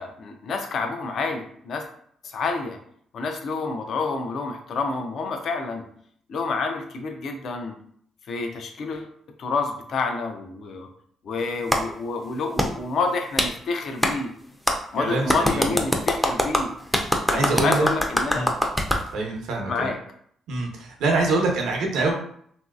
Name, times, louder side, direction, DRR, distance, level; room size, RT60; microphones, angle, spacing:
voice 1, 0.0-1.8 2.2-2.8 3.1-5.8 6.3-7.7 8.3-9.1 9.4-10.9 11.2-14.3 14.9-16.7 17.3-18.5 19.7-20.0, left 4 dB, 60° left, 4 dB, 0.5 m, -28 dB
Clapping, 11.7-11.8 12.6-12.7 13.4-13.5 14.0-14.1 14.7-14.8 15.3-19.0, equal, 5° left, 0.4 m, -22 dB
voice 2, 14.9-15.8 17.3-17.9 18.3-18.5 19.1-19.9 20.5-22.1, right 3 dB, 85° right, 1 dB, 0.7 m, -25 dB
3.0 x 2.7 x 2.4 m, 0.63 s
cardioid pair, 90°, 0 cm